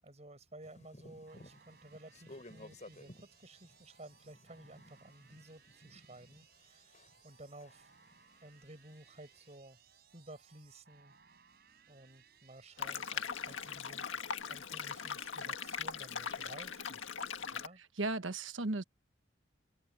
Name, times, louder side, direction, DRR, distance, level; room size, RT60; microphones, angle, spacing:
voice 1, 0.0-7.9 8.4-9.8 10.1-11.1 11.9-14.1 14.5-17.1 17.5-17.8, right 1 dB, 35° right, 7.9 m, -54 dB
sound 1, 0.6-7.3 7.6-9.5, left 1 dB, 35° left, 6.4 m, -56 dB
sound 2, 1.3-14.0, right 7 dB, 55° right, 4.9 m, -65 dB
sound 3, 12.8-17.7, left 6 dB, 75° left, 1.7 m, -40 dB
voice 2, 17.8-18.8, right 2 dB, 75° right, 1.2 m, -36 dB
open air
head